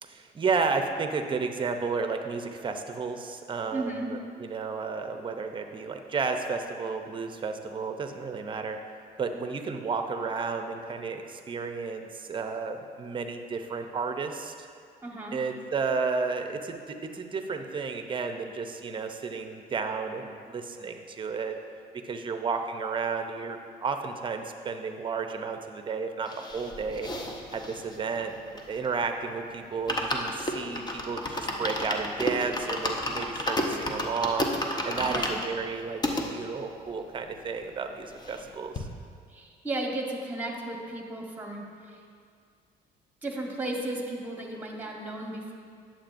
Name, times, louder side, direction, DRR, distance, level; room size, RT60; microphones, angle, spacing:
voice 1, 0.0-8.8 9.2-14.7 15.3-21.5 22.0-27.1 27.5-28.3 28.7-34.5 34.8-38.9, right 5 dB, 30° right, 6 dB, 0.6 m, -32 dB
voice 2, 3.7-4.1 15.0-15.4 35.1-35.4 39.3-42.0 43.2-45.5, right 2 dB, 10° right, 0 dB, 1.2 m, -34 dB
sound 1, 26.3-29.0 29.4-29.5 29.7-36.3 36.8-36.9 37.1-37.2 37.5-38.5 38.8-38.9, left 1 dB, 25° left, 0.8 m, -32 dB
10.5 x 7.5 x 2.6 m, 2.2 s
cardioid pair, 110°, 17 cm